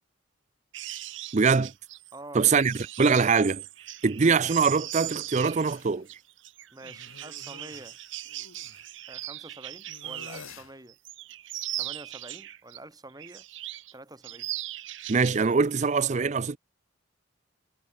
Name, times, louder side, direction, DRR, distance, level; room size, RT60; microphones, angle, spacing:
sound 1, 0.7-10.6 10.9-12.8 13.2-13.9 14.2-15.5 15.8-16.0, right 15 dB, 65° right, 0.8 m, -39 dB
voice 1, 1.3-1.7 2.3-3.6 4.0-6.1 15.1-16.6, right 5 dB, 35° right, 0.5 m, -23 dB
voice 2, 2.1-2.8 6.7-8.0 9.1-11.0 11.8-13.4 13.9-14.5, right 2 dB, 20° right, 3.4 m, -47 dB
sound 2, 5.5-6.0 6.8-8.9 9.9-10.8, left 5 dB, 80° left, 1.1 m, -49 dB
head